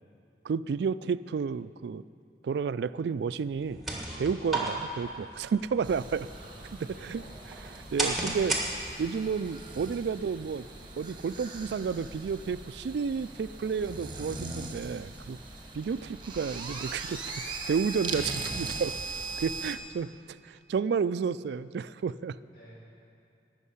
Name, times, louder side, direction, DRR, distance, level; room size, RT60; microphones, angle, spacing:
voice 1, 0.4-2.0 2.4-3.8 4.2-6.3 6.7-8.6 9.0-10.7 11.0-15.4 15.7-18.9 19.4-22.4, right 6 dB, 70° right, 16 dB, 0.3 m, -31 dB
sound 1, 3.5-9.2, right 2 dB, ahead, 1.6 m, -35 dB
sound 2, 5.8-19.8, right 3 dB, 25° right, 1.2 m, -40 dB
voice 2, 6.3-7.3 22.5-22.7, equal, 50° left, -9 dB, 3.9 m, -52 dB
14.0 x 6.5 x 9.7 m, 2.5 s
head